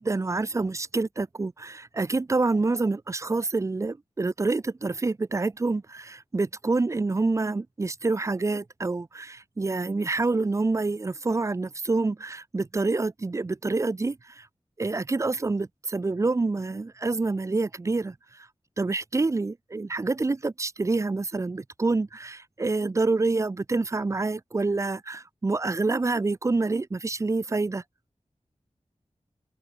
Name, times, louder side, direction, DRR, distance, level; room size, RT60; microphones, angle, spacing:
voice 1, 0.0-14.2 14.8-18.1 18.8-27.8, right 3 dB, 25° right, 0.3 m, -27 dB
open air
wide cardioid pair, 50°, 12 cm